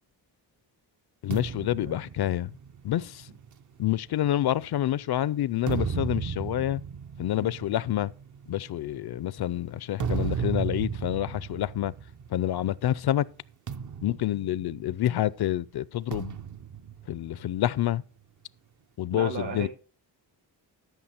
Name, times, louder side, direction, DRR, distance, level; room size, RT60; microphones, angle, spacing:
voice 1, 1.2-2.5 2.8-3.3 3.8-6.8 7.2-8.1 8.5-11.9 12.3-13.2 14.0-16.4 17.1-18.0 19.0-19.7, left 13 dB, 60° left, 0.5 m, -28 dB
sound 1, 1.3-4.9 5.4-12.8 13.1-13.3 13.7-15.3 16.1-17.9, right 6 dB, 45° right, 0.6 m, -35 dB
voice 2, 19.1-19.7, right 5 dB, 70° right, 2.0 m, -35 dB
13.0 x 5.9 x 4.4 m
cardioid pair, 90°, 44 cm